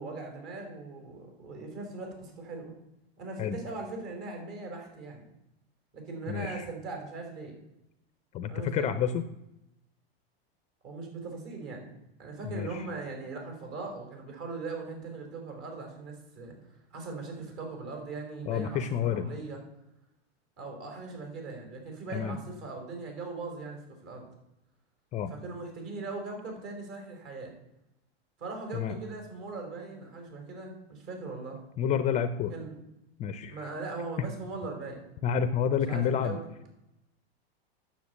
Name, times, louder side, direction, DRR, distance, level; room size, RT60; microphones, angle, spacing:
voice 1, 0.0-2.7 3.2-5.3 5.9-7.6 8.5-8.9 10.8-11.9 12.2-16.5 16.9-19.6 20.6-24.3 25.3-27.5 28.4-31.6 32.5-32.8 33.5-35.0 35.7-36.4, right 3 dB, 50° right, 2 dB, 4.8 m, -40 dB
voice 2, 6.3-6.6 8.3-9.2 12.4-12.9 18.5-19.3 22.1-22.4 25.1-25.3 28.7-28.9 31.8-32.5 33.2-33.6 35.2-36.4, left 8 dB, 25° left, 12 dB, 0.5 m, -29 dB
9.6 x 7.2 x 8.2 m, 0.87 s
supercardioid pair, 135°, 31 cm